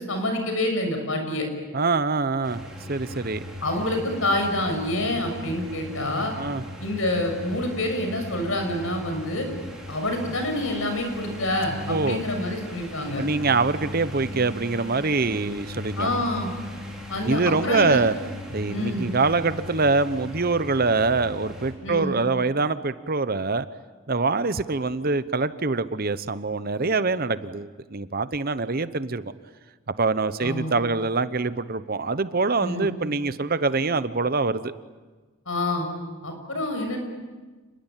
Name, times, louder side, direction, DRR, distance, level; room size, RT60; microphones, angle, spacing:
voice 1, 0.0-1.5 3.6-6.3 6.8-9.5 9.9-13.2 16.0-16.5 17.1-18.0 18.7-19.1 21.8-22.1 30.4-30.8 32.6-32.9 35.5-35.9 36.2-37.0, left 1 dB, 65° left, 4 dB, 6.6 m, -27 dB
voice 2, 1.7-2.6 2.9-3.4 6.4-6.6 11.9-12.2 13.2-16.2 17.2-18.1 18.5-23.7 24.1-29.2 30.0-34.7, right 3 dB, 40° right, 13 dB, 0.8 m, -24 dB
sound 1, 2.4-21.7, left 1 dB, 5° right, 5.0 m, -38 dB
29.5 x 21.0 x 9.1 m, 1.3 s
head